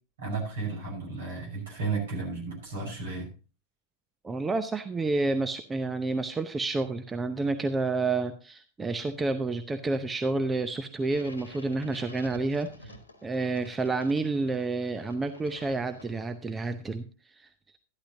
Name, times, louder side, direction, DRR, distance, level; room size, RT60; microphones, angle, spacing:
voice 1, 0.2-3.3, right 4 dB, 60° right, 1 dB, 5.5 m, -33 dB
voice 2, 4.2-12.9 13.2-17.1 17.4-17.5, right 3 dB, 15° right, 9 dB, 0.7 m, -29 dB
sound 1, 11.0-16.5, left 1 dB, 80° left, 1.4 m, -50 dB
12.5 x 11.5 x 2.8 m, 0.36 s
figure-of-eight pair, 90°, 0 cm